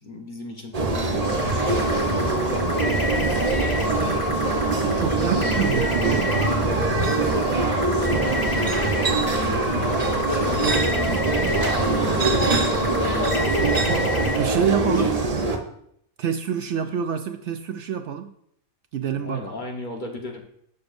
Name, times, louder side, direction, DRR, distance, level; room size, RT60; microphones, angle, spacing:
voice 1, 0.0-4.2 5.4-5.6 7.6-8.6 9.0-13.7 14.8-15.1 19.2-20.4, left 3 dB, 35° left, 1 dB, 1.2 m, -35 dB
sound 1, 0.7-15.6, right 3 dB, 35° right, 0.8 m, -23 dB
sound 2, 1.2-14.4, left 2 dB, 20° left, 0.8 m, -30 dB
voice 2, 4.8-6.3 13.9-15.1 16.2-18.3 18.9-19.5, right 8 dB, 65° right, 8 dB, 0.8 m, -27 dB
12.0 x 6.9 x 2.6 m, 0.71 s
omnidirectional pair, 1.4 m